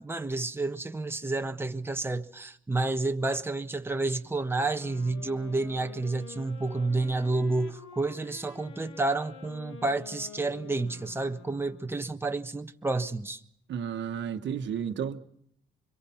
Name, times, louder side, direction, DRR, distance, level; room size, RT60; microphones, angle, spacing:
voice 1, 0.0-13.4, right 2 dB, 10° right, 1.3 m, -30 dB
sound 1, 4.6-12.3, left 6 dB, 80° left, 2.0 m, -48 dB
voice 2, 13.7-15.2, right 8 dB, 65° right, 1.4 m, -32 dB
25.0 x 22.5 x 5.8 m
cardioid pair, 90°, 20 cm